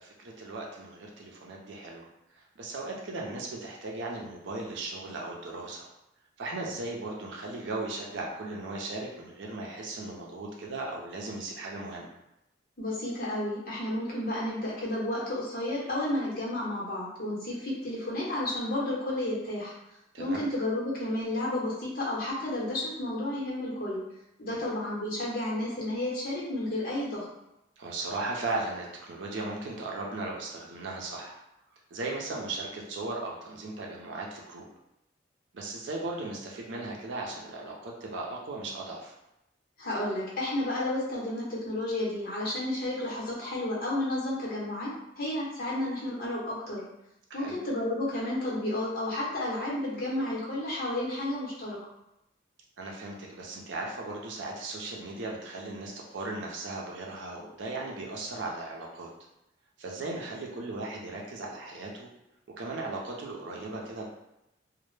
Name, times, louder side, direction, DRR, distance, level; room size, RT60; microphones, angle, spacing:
voice 1, 0.0-5.9 6.4-12.1 20.1-20.4 24.5-24.6 27.8-31.4 31.9-34.6 35.5-39.1 47.3-47.6 52.8-59.1 59.8-62.1 62.6-64.0, right 2 dB, 90° right, -1 dB, 0.5 m, -37 dB
voice 2, 12.8-19.7 20.2-24.0 24.4-27.2 39.8-46.8 47.3-51.8, left 1 dB, 50° left, -5 dB, 0.8 m, -31 dB
2.1 x 2.0 x 3.1 m, 0.87 s
head